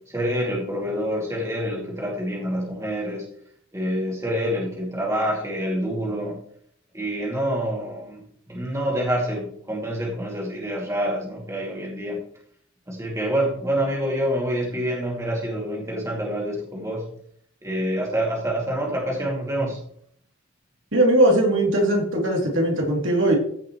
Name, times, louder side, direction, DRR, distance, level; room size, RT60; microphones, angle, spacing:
voice 1, 0.1-3.2 3.7-6.4 6.9-12.2 12.9-17.1 17.6-19.8, equal, 15° right, -3 dB, 2.5 m, -27 dB
voice 2, 20.9-23.4, right 1 dB, 65° right, -1 dB, 2.9 m, -19 dB
15.0 x 6.0 x 3.1 m, 0.63 s
head